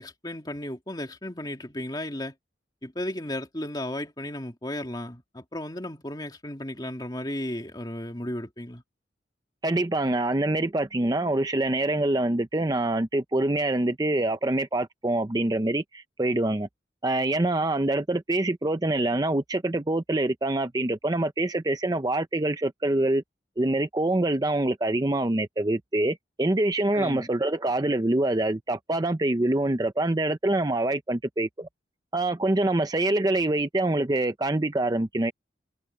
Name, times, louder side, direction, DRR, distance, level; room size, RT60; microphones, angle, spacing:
voice 1, 0.0-2.3 2.8-8.8 26.9-27.3, left 1 dB, 20° left, 2.5 m, -34 dB
voice 2, 9.6-16.7 17.0-23.2 23.6-31.7 32.1-35.3, right 2 dB, 20° right, 0.6 m, -25 dB
head